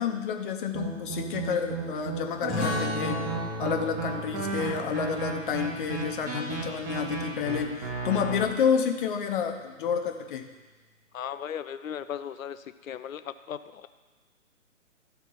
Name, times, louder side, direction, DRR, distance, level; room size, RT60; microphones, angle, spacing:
voice 1, 0.0-10.5, left 7 dB, 40° left, 5 dB, 0.9 m, -29 dB
sound 1, 0.7-8.4, right 5 dB, 20° right, 1.7 m, -34 dB
sound 2, 2.5-7.7, left 1 dB, ahead, 0.5 m, -36 dB
voice 2, 11.1-13.9, left 9 dB, 75° left, 12 dB, 0.6 m, -37 dB
13.0 x 4.5 x 5.6 m, 1.3 s
hypercardioid pair, 145°, 41 cm